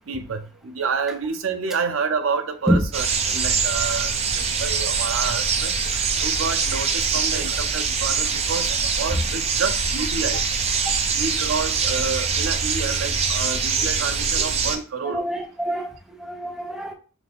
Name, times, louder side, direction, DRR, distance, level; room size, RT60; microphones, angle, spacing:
voice 1, 0.1-10.5 11.2-15.2, right 5 dB, 80° right, 0.5 m, -29 dB
sound 1, 2.9-14.8, right 5 dB, 30° right, 0.5 m, -23 dB
voice 2, 15.0-16.9, equal, ahead, 0.7 m, -25 dB
5.9 x 2.5 x 3.5 m
head